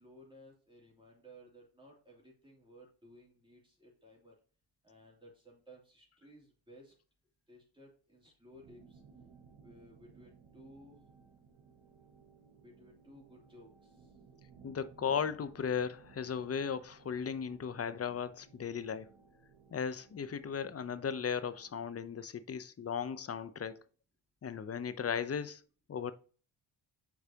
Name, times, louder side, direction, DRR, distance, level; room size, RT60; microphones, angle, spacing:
voice 1, 0.0-4.3 4.8-6.9 7.5-9.0 9.6-11.0 12.6-14.1, equal, 10° right, 2.8 m, -58 dB
sound 1, 8.5-21.9, right 6 dB, 65° right, 1.3 m, -61 dB
voice 2, 14.6-19.1 19.7-23.8 24.4-25.6 25.9-26.1, left 7 dB, 30° left, 0.7 m, -36 dB
8.3 x 4.7 x 2.8 m
cardioid pair, 75°, 50 cm